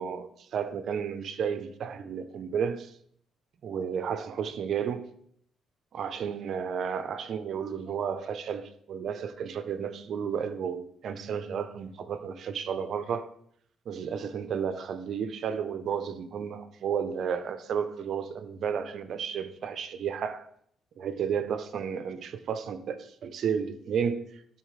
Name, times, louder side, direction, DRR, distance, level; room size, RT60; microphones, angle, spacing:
voice 1, 0.0-2.9 3.6-5.1 5.9-13.3 13.9-20.5 21.0-24.4, right 7 dB, 65° right, 0.7 m, -32 dB
12.5 x 4.3 x 3.3 m
cardioid pair, 90°, 0 cm